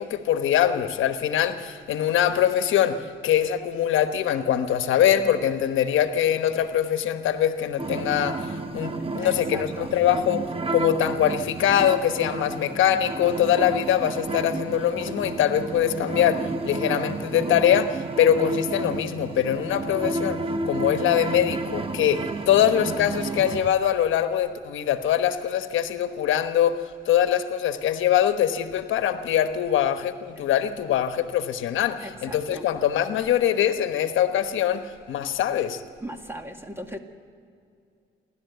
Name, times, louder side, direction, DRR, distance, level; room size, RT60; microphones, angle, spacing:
voice 1, 0.0-10.5 10.7-35.8, left 10 dB, 80° left, 9 dB, 1.1 m, -23 dB
sound 1, 7.8-23.7, right 3 dB, 30° right, 1.0 m, -31 dB
voice 2, 9.2-9.9 32.0-32.6 36.0-37.0, right 1 dB, 10° right, 5 dB, 2.0 m, -38 dB
29.0 x 12.0 x 8.1 m, 2.4 s
cardioid pair, 90°, 20 cm